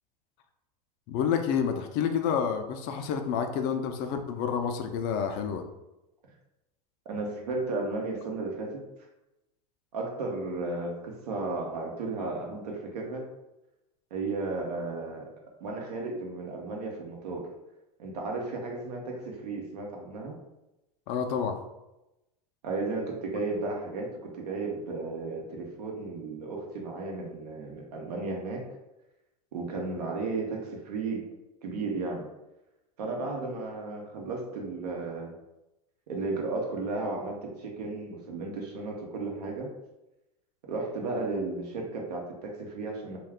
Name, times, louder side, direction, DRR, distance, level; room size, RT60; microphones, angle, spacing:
voice 1, 1.1-5.7 21.1-21.6, left 7 dB, 50° left, 6 dB, 0.4 m, -29 dB
voice 2, 7.1-8.8 9.9-13.3 14.1-15.3 15.6-17.5 18.0-20.4 22.6-28.6 29.5-31.3 31.6-32.3 33.0-35.3 36.1-39.7 40.7-43.2, right 3 dB, 80° right, 0 dB, 0.8 m, -34 dB
2.3 x 2.3 x 3.4 m, 0.95 s
hypercardioid pair, 95°, 20 cm